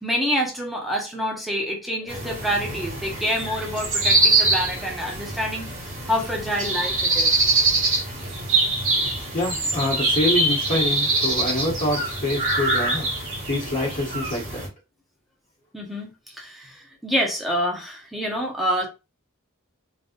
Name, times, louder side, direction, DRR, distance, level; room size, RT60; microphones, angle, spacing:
voice 1, 0.0-7.4 15.7-18.9, equal, ahead, 1.2 m, -27 dB
sound 1, 2.1-14.7, right 2 dB, 40° right, 1.6 m, -24 dB
voice 2, 9.3-13.1 13.5-14.7, left 1 dB, 40° left, 1.7 m, -26 dB
3.9 x 3.5 x 2.6 m
head